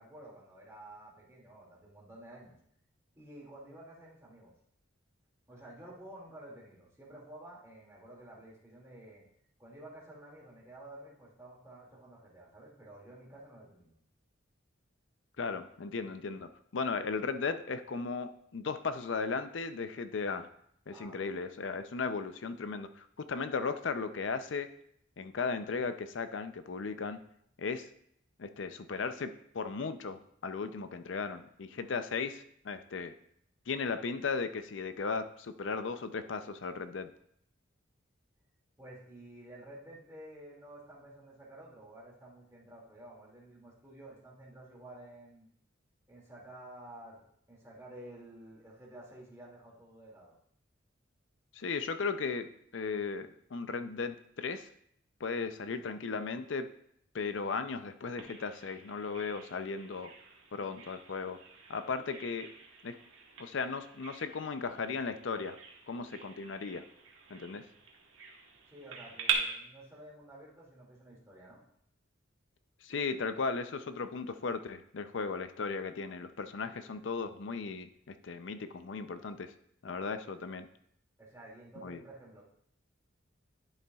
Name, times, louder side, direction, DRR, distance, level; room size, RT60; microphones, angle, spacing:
voice 1, 0.0-2.5 3.2-4.5 5.5-9.2 9.6-13.9 20.9-21.4 38.8-45.5 46.1-50.3 68.7-71.6 81.2-82.4, right 1 dB, 15° right, -5 dB, 2.3 m, -51 dB
voice 2, 15.4-20.5 20.9-24.7 25.2-27.2 27.6-27.9 28.4-33.1 33.7-37.1 51.5-54.7 55.2-56.7 57.1-60.1 60.5-61.4 61.7-62.5 62.8-63.0 63.4-65.6 65.9-66.8 67.3-67.7 72.8-79.5 79.8-80.7 81.8-82.0, left 4 dB, 70° left, 10 dB, 0.5 m, -36 dB
Bird vocalization bird call bird song, 58.2-69.3, right 9 dB, 85° right, 1.5 m, -43 dB
10.5 x 6.6 x 2.4 m, 0.71 s
head